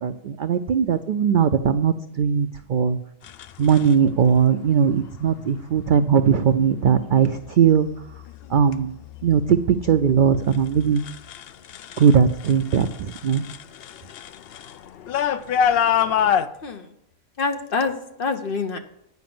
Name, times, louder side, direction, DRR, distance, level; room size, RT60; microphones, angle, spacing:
voice 1, 0.0-3.0 3.6-7.9 8.5-9.0 9.2-11.0 12.0-13.4, right 7 dB, 80° right, 9 dB, 0.4 m, -19 dB
sound 1, 3.2-3.9 5.1-5.4 6.0-6.4 7.0-7.5 7.8-12.1 12.4-16.5, left 8 dB, 65° left, 0.6 m, -27 dB
voice 2, 16.6-16.9 17.4-18.8, left 4 dB, 45° left, 6 dB, 1.0 m, -26 dB
9.4 x 5.1 x 7.6 m, 0.78 s
omnidirectional pair, 1.4 m